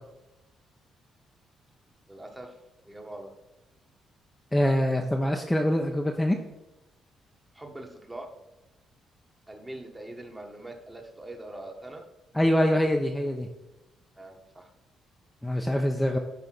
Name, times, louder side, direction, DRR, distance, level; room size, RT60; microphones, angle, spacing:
voice 1, 2.1-2.6 2.9-3.3 7.5-8.4 9.5-12.1 14.2-14.7, right 1 dB, 15° right, 3 dB, 1.6 m, -42 dB
voice 2, 4.5-6.4 12.3-13.5 15.4-16.2, equal, 5° left, 1 dB, 0.8 m, -24 dB
11.0 x 3.7 x 6.0 m, 0.98 s
cardioid pair, 90°, 0 cm